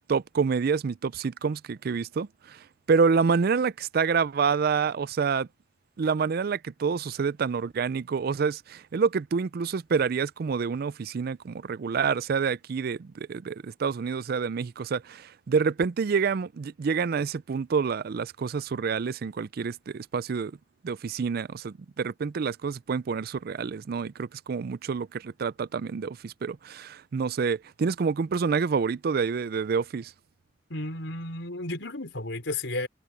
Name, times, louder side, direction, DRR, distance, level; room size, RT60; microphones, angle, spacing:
voice 1, 0.1-5.5 6.0-20.6 20.8-30.1, right 5 dB, 55° right, 0.4 m, -27 dB
voice 2, 30.7-32.9, left 2 dB, 80° left, 4.5 m, -33 dB
head